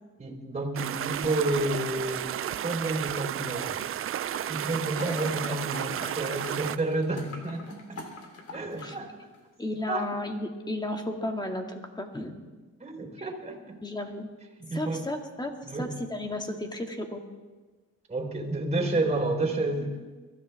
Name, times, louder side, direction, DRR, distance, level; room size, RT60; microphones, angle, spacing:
voice 1, 0.2-3.8 4.5-8.0 8.5-9.1 9.9-10.1 12.8-13.8 14.6-15.0 15.6-15.9 18.1-19.9, right 2 dB, 20° right, 3 dB, 4.1 m, -30 dB
sound 1, 0.8-6.8, right 11 dB, 45° right, 0.5 m, -33 dB
sound 2, 4.3-9.0 9.3-9.4, left 3 dB, 55° left, 3.3 m, -44 dB
voice 2, 5.1-5.6 6.0-6.1 8.8-9.0 9.6-12.4 13.2-13.3 13.8-14.3 14.7-15.5 15.8-17.2, left 1 dB, 15° left, 3 dB, 2.1 m, -34 dB
23.5 x 13.5 x 3.5 m, 1.3 s
cardioid pair, 90°, 30 cm